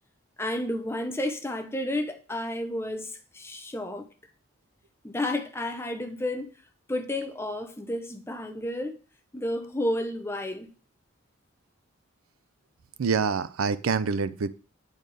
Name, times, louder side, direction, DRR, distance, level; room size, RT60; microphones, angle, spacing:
voice 1, 0.4-4.1 5.0-6.5 6.9-9.0 9.3-10.7, left 1 dB, 10° left, 0.6 m, -31 dB
voice 2, 13.0-14.5, right 5 dB, 90° right, 0.5 m, -26 dB
8.8 x 4.3 x 3.3 m
head